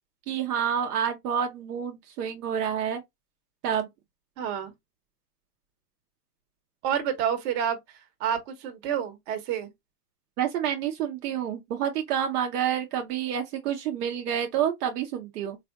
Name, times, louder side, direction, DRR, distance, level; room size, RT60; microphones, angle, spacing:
voice 1, 0.3-3.0 3.6-3.9 10.4-15.6, right 9 dB, 75° right, 0.7 m, -28 dB
voice 2, 4.4-4.7 6.8-7.8 8.2-9.7, right 9 dB, 45° right, 0.9 m, -28 dB
3.5 x 2.4 x 2.3 m
hypercardioid pair, 110°, 47 cm